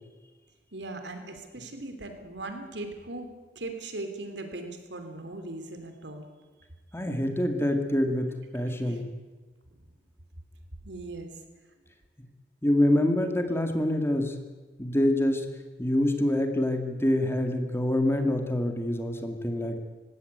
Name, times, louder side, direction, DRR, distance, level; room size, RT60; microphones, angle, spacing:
voice 1, 0.7-3.3 3.5-6.3 8.8-9.0 10.8-11.3, right 2 dB, 85° right, 6 dB, 3.2 m, -39 dB
voice 2, 6.9-9.1 12.6-14.4 14.8-15.5 15.8-19.8, left 1 dB, 15° left, 5 dB, 2.1 m, -26 dB
19.0 x 17.0 x 9.3 m, 1.3 s
head